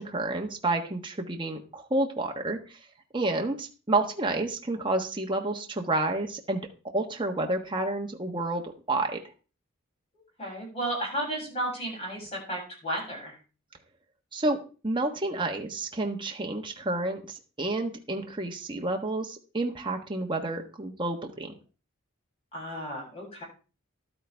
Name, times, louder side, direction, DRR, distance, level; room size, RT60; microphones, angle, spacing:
voice 1, 0.0-2.8 3.1-6.6 6.9-9.2 14.3-21.5, right 2 dB, 20° right, 2 dB, 1.3 m, -30 dB
voice 2, 10.1-13.4 22.5-23.4, right 1 dB, 30° left, -3 dB, 7.3 m, -33 dB
12.0 x 9.5 x 3.5 m, 0.34 s
head